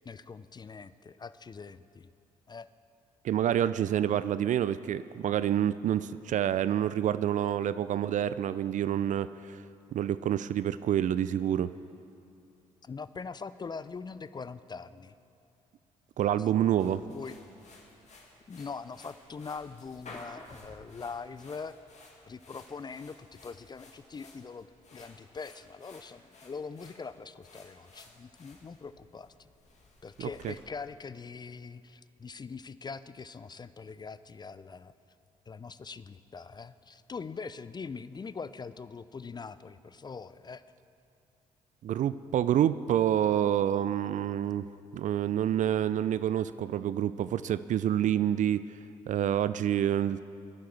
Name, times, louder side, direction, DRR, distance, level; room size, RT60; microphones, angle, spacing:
voice 1, 0.0-2.1 2.5-2.7 12.8-15.1 16.8-17.4 18.5-21.8 22.3-29.5 30.0-34.9 35.5-40.6, left 5 dB, 25° left, 15 dB, 0.4 m, -42 dB
voice 2, 3.2-9.6 9.9-11.7 16.2-17.0 30.2-30.5 41.8-44.7 44.9-48.7 49.1-50.2, right 10 dB, 45° right, 15 dB, 0.4 m, -28 dB
sound 1, 16.8-30.6, left 2 dB, 40° left, 2.1 m, -54 dB
21.0 x 11.5 x 3.3 m, 2.6 s
figure-of-eight pair, 45°, 18 cm